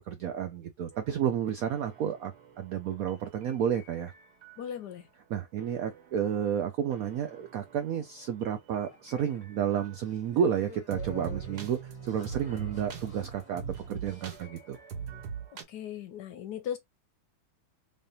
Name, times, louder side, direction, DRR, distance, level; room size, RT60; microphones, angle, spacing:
voice 1, 0.1-4.1 5.3-13.6 13.9-14.8, right 9 dB, 80° right, 0.8 m, -31 dB
sound 1, 0.9-4.7 5.6-10.0 10.9-15.6, right 6 dB, 60° right, 1.4 m, -44 dB
voice 2, 4.6-5.1 15.7-16.8, left 9 dB, 70° left, 1.1 m, -37 dB
sound 2, 8.9-14.4, left 6 dB, 30° left, 0.6 m, -51 dB
3.5 x 3.3 x 2.7 m
omnidirectional pair, 2.1 m